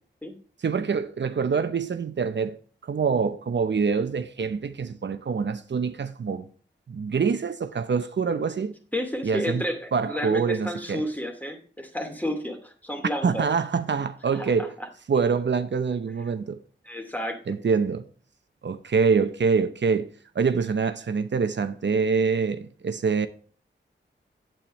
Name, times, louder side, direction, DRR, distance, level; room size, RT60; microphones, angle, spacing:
voice 1, 0.6-2.6 2.8-6.5 6.9-8.7 9.2-9.6 9.9-11.0 13.2-14.7 15.1-16.6 17.5-18.0 18.6-20.1 20.3-23.3, right 5 dB, 70° right, 0.8 m, -25 dB
voice 2, 8.9-13.4 14.3-14.9 16.8-17.6, equal, 10° left, 2.5 m, -31 dB
8.7 x 8.7 x 3.1 m
cardioid pair, 55°, 19 cm